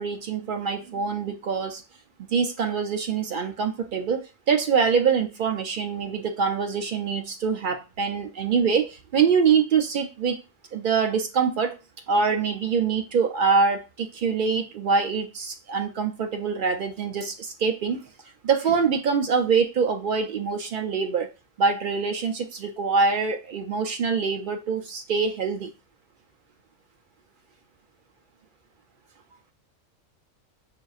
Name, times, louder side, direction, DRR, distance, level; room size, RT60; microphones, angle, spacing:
voice 1, 0.0-1.8 2.3-10.4 10.7-11.8 12.1-18.0 18.4-21.3 21.6-25.7, right 5 dB, 70° right, 0.4 m, -24 dB
6.0 x 2.5 x 2.3 m
omnidirectional pair, 1.4 m